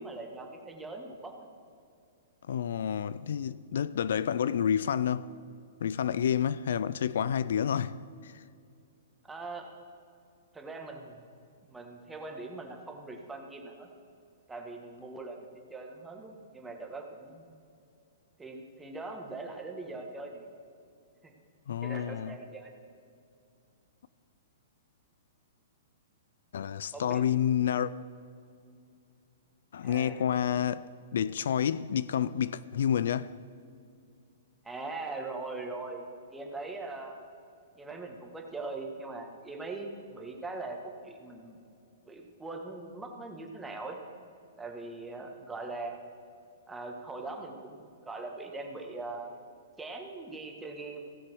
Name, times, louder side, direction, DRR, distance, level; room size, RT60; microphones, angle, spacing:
voice 1, 0.0-1.3 9.3-9.7 10.5-11.3 11.6-13.9 14.5-17.5 18.4-20.5 21.2-21.3 21.8-22.7 26.9-27.2 29.8-30.2 34.6-36.0 36.3-37.2 37.7-40.8 41.0-41.6 42.0-44.0 44.6-46.0 46.7-47.8 48.1-49.3 49.8-51.1, right 3 dB, 10° right, 1.6 m, -41 dB
voice 2, 2.5-5.3 5.8-8.0 8.2-8.4 21.7-22.4 26.5-27.9 29.7-33.3, left 9 dB, 70° left, 0.3 m, -29 dB
16.0 x 6.9 x 6.2 m
hypercardioid pair, 135°, 0 cm